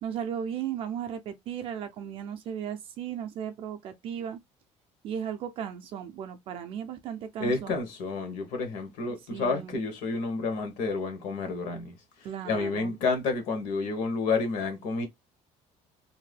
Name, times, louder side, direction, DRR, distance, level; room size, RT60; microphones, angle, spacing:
voice 1, 0.0-4.4 5.0-7.7 9.3-9.8 12.2-13.0, right 8 dB, 45° right, 0.4 m, -36 dB
voice 2, 7.4-12.0 12.4-15.1, left 4 dB, 70° left, 1.0 m, -30 dB
2.6 x 2.1 x 3.2 m
cardioid pair, 175°, 13 cm